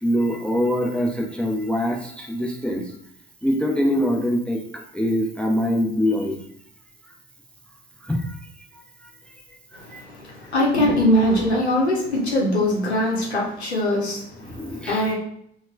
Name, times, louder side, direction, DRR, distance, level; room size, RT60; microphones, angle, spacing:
voice 1, 0.0-2.8 3.4-6.4 8.0-8.4 9.7-10.0 14.4-15.0, equal, 5° left, 1 dB, 0.5 m, -24 dB
voice 2, 10.5-14.2 14.9-15.1, left 1 dB, 85° left, -3 dB, 0.6 m, -21 dB
3.1 x 2.1 x 3.0 m, 0.69 s
figure-of-eight pair, 50°, 32 cm